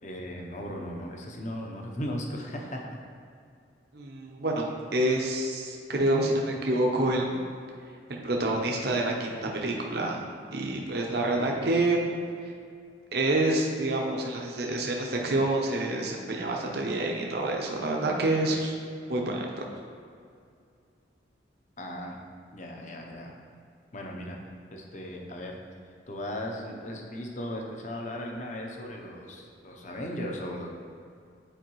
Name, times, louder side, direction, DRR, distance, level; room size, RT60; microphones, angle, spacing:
voice 1, 0.0-2.8 21.8-22.2 22.5-23.4 23.9-24.4 24.7-25.6 26.1-30.7, equal, 40° left, 1 dB, 0.7 m, -37 dB
voice 2, 3.9-7.4 8.1-10.2 10.5-12.0 13.1-18.7 19.1-19.5, right 2 dB, 55° right, 0 dB, 0.7 m, -27 dB
8.9 x 4.6 x 3.1 m, 2.4 s
head